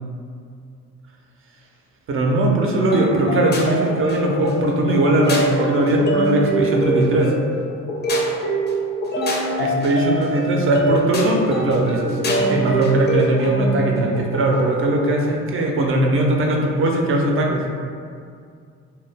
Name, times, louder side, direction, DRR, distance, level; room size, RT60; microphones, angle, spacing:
voice 1, 2.1-7.3 9.6-17.6, right 1 dB, 45° right, 0 dB, 0.5 m, -19 dB
sound 1, 2.9-15.1, right 1 dB, 35° left, 0.5 m, -24 dB
2.1 x 2.1 x 3.3 m, 2.3 s
cardioid pair, 90°, 30 cm